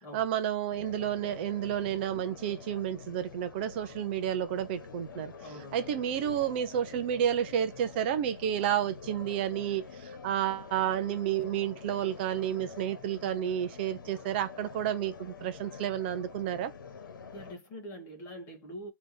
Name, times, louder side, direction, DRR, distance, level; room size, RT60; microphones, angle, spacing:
voice 1, 0.1-5.3 5.7-16.7, right 10 dB, 30° right, 0.7 m, -31 dB
sound 1, 0.7-17.5, left 5 dB, 60° left, 1.3 m, -47 dB
voice 2, 5.4-5.9 17.3-18.9, equal, 20° left, 1.6 m, -44 dB
3.4 x 3.0 x 4.2 m
hypercardioid pair, 160°, 12 cm